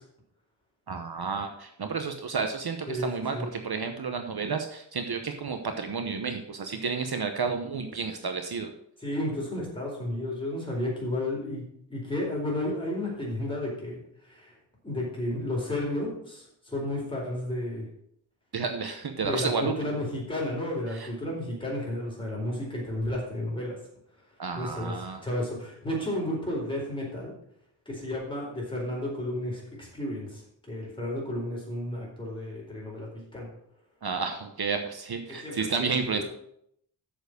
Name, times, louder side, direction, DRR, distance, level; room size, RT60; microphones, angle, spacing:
voice 1, 0.9-8.7 18.5-19.7 20.9-21.1 24.4-25.3 34.0-36.2, right 5 dB, 55° right, 6 dB, 1.0 m, -31 dB
voice 2, 2.9-3.5 9.0-11.6 11.9-14.0 14.3-14.5 14.8-17.9 19.2-23.8 24.6-27.3 27.9-30.4 30.7-33.5 35.3-35.7 36.0-36.2, left 1 dB, 10° left, -3 dB, 4.2 m, -32 dB
7.7 x 6.8 x 6.5 m, 0.72 s
wide cardioid pair, 115°, 45 cm